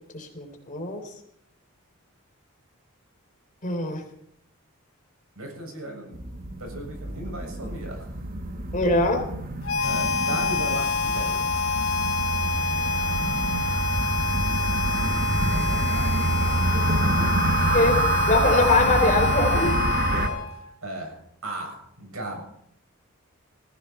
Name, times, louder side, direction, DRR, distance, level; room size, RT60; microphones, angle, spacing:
voice 1, 0.1-1.0 3.6-4.0 8.7-9.2 17.7-18.0 18.3-19.7, left 2 dB, 35° left, 4 dB, 3.8 m, -22 dB
voice 2, 5.4-6.2 6.6-8.1 9.8-11.7 15.0-17.7 20.0-20.4 20.8-22.4, right 1 dB, 80° right, 2 dB, 7.4 m, -37 dB
sound 1, 6.1-20.3, right 2 dB, 40° right, 1.4 m, -27 dB
Harmonica, 9.6-20.7, left 4 dB, 75° left, 3.6 m, -27 dB
20.0 x 15.5 x 4.5 m, 0.74 s
head